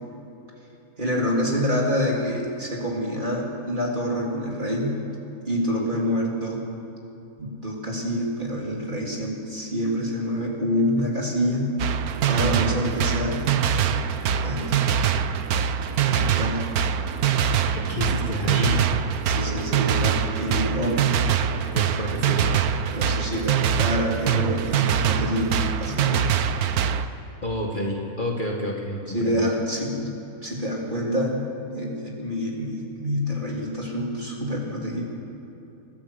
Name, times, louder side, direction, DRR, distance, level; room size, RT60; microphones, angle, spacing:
voice 1, 1.0-4.9 5.5-6.6 7.4-11.7 12.2-13.4 13.8-14.0 14.4-14.8 16.1-16.7 19.2-21.2 22.9-26.4 29.1-30.1 30.4-31.4 31.7-35.0, equal, 30° right, -2 dB, 3.7 m, -27 dB
sound 1, 11.8-27.1, right 8 dB, 75° right, 1.3 m, -23 dB
voice 2, 17.7-18.8 21.7-22.6 27.4-29.5, left 1 dB, 30° left, -1 dB, 2.0 m, -29 dB
22.5 x 15.5 x 8.0 m, 2.9 s
omnidirectional pair, 1.6 m